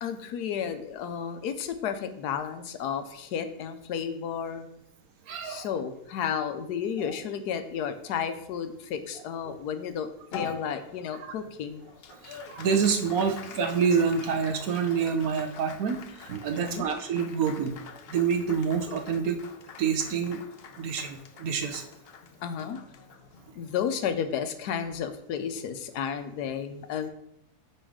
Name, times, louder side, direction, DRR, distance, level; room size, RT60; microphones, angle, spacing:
voice 1, 0.0-4.7 5.4-11.9 16.5-16.9 22.4-22.8 23.6-27.1, left 8 dB, 85° left, 9 dB, 1.2 m, -32 dB
voice 2, 5.3-5.8 7.0-7.1 9.5-9.6 10.4-10.5 11.2-11.3 12.1-17.7 18.1-19.4 19.8-20.4 20.8-21.8, right 6 dB, 70° right, 5 dB, 1.2 m, -27 dB
Applause, 10.3-25.0, left 7 dB, 70° left, 0.6 m, -45 dB
5.6 x 5.4 x 4.9 m, 0.76 s
omnidirectional pair, 1.7 m